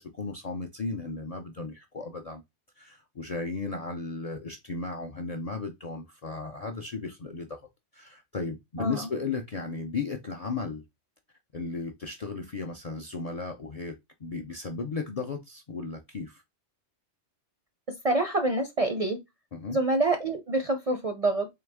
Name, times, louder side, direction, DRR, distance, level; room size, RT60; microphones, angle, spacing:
voice 1, 0.0-2.4 2.8-7.6 7.9-10.8 11.5-16.4 19.5-19.8, left 4 dB, 50° left, 0.4 m, -35 dB
voice 2, 8.8-9.1 17.9-19.2 19.7-21.5, right 2 dB, 45° right, 0.4 m, -26 dB
3.9 x 3.3 x 3.4 m
omnidirectional pair, 1.3 m